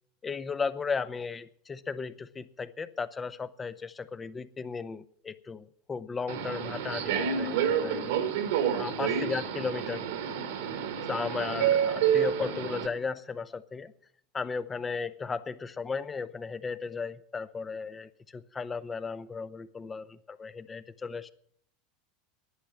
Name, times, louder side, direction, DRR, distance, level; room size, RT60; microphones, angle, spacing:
voice 1, 0.2-8.1 8.7-10.0 11.1-13.9 14.3-21.3, left 5 dB, 20° left, 0.9 m, -35 dB
Subway metro underground, 6.3-12.9, right 8 dB, 65° right, 1.6 m, -29 dB
11.5 x 10.0 x 7.5 m
figure-of-eight pair, 80°, 0 cm